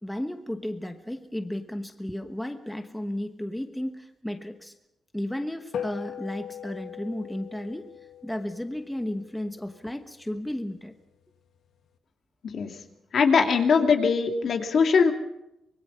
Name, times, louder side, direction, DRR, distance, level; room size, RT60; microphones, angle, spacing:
voice 1, 0.0-4.7 5.1-7.9 8.2-10.9, left 1 dB, 5° left, 6 dB, 1.2 m, -33 dB
sound 1, 5.7-10.4, left 8 dB, 80° left, 1.6 m, -40 dB
voice 2, 13.1-15.1, left 5 dB, 60° left, 4 dB, 2.4 m, -21 dB
25.0 x 22.0 x 5.6 m, 0.88 s
wide cardioid pair, 135°, 0 cm